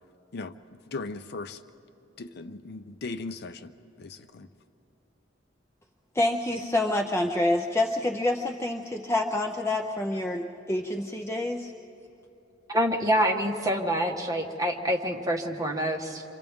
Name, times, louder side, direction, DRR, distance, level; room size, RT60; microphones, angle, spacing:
voice 1, 0.3-1.6 2.2-4.5, left 3 dB, 55° left, 10 dB, 0.5 m, -38 dB
voice 2, 6.1-11.7, left 1 dB, 15° left, 2 dB, 0.6 m, -27 dB
voice 3, 12.7-16.2, equal, 20° right, 1 dB, 1.3 m, -26 dB
29.0 x 25.5 x 3.6 m, 2.9 s
head